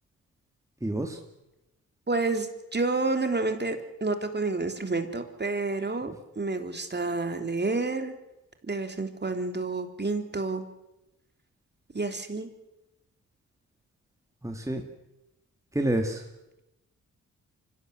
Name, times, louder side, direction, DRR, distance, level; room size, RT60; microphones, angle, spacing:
voice 1, 0.8-1.2 14.4-14.8 15.7-16.2, right 1 dB, 10° right, 3 dB, 2.6 m, -28 dB
voice 2, 2.1-8.1 8.6-10.6 11.9-12.5, right 3 dB, 30° right, 6 dB, 3.5 m, -29 dB
24.5 x 17.0 x 8.0 m, 0.94 s
supercardioid pair, 50°, 33 cm